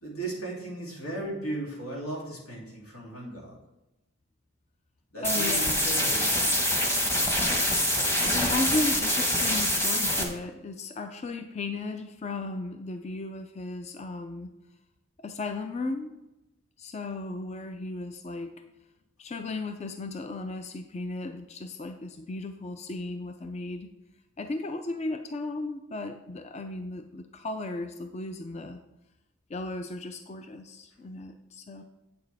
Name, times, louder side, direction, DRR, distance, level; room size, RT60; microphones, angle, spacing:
voice 1, 0.0-3.5 5.1-6.4, right 2 dB, 90° left, -3 dB, 2.8 m, -36 dB
voice 2, 5.2-5.8 8.2-14.5 15.2-16.2 16.8-18.6 19.2-23.9 24.4-28.8 29.5-31.8, left 2 dB, 30° left, 7 dB, 0.4 m, -35 dB
sound 1, 5.2-10.2, equal, 10° left, 1.0 m, -25 dB
8.7 x 6.9 x 3.4 m, 0.95 s
head